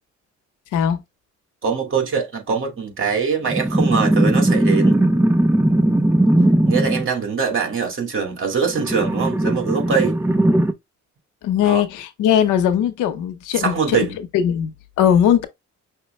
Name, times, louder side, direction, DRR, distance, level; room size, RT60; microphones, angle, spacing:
voice 1, 1.6-5.0 6.7-10.2 11.6-11.8 13.5-14.2, right 5 dB, 45° right, 2.0 m, -23 dB
sound 1, 3.5-7.1 8.6-10.7, right 1 dB, 5° right, 0.5 m, -18 dB
voice 2, 11.4-14.1 14.3-15.4, left 9 dB, 90° left, 0.8 m, -19 dB
5.8 x 2.2 x 3.1 m
cardioid pair, 90°, 30 cm